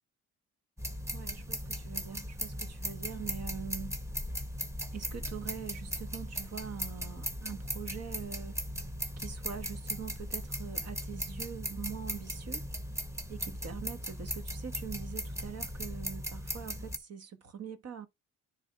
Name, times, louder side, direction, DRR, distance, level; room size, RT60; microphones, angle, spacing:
sound 1, 0.8-17.0, equal, 10° right, 1.3 m, -38 dB
voice 1, 1.1-4.0 4.9-8.6 9.2-12.7 13.3-18.1, right 8 dB, 55° right, 1.5 m, -43 dB
9.9 x 3.7 x 4.7 m
cardioid pair, 90°, 30 cm